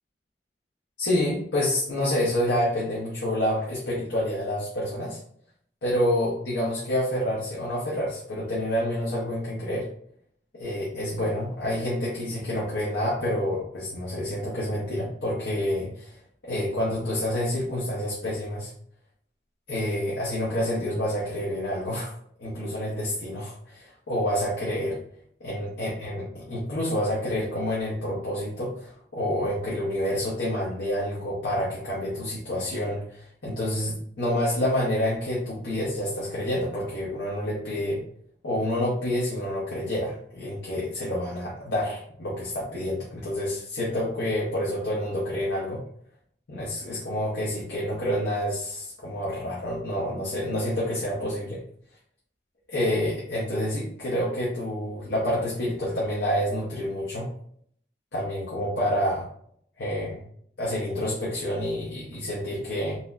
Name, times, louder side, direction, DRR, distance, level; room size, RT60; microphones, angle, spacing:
voice 1, 1.0-5.2 5.8-9.9 10.6-16.2 16.4-18.7 19.7-22.1 22.4-25.0 25.4-38.0 38.4-45.8 46.5-51.6 52.7-57.3 58.1-59.3 59.8-60.2 60.6-63.0, left 1 dB, 75° left, -6 dB, 0.8 m, -28 dB
4.1 x 2.1 x 2.5 m, 0.65 s
head